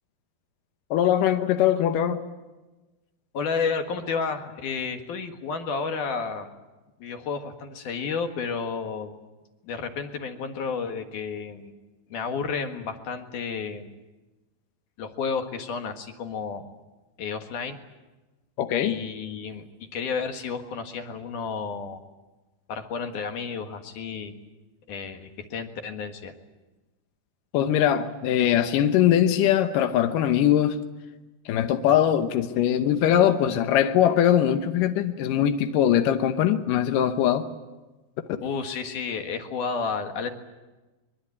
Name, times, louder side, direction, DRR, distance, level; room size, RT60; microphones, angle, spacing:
voice 1, 0.9-2.2 18.6-19.0 27.5-30.8 31.5-37.5 38.3-38.4, left 10 dB, 80° left, 7 dB, 1.9 m, -21 dB
voice 2, 3.3-6.5 7.0-9.2 9.6-11.7 12.1-13.9 15.0-16.6 17.2-17.8 18.8-22.0 22.7-24.4 24.9-26.3 38.4-40.3, left 5 dB, 55° left, 6 dB, 2.6 m, -31 dB
24.0 x 22.5 x 8.6 m, 1.2 s
omnidirectional pair, 5.3 m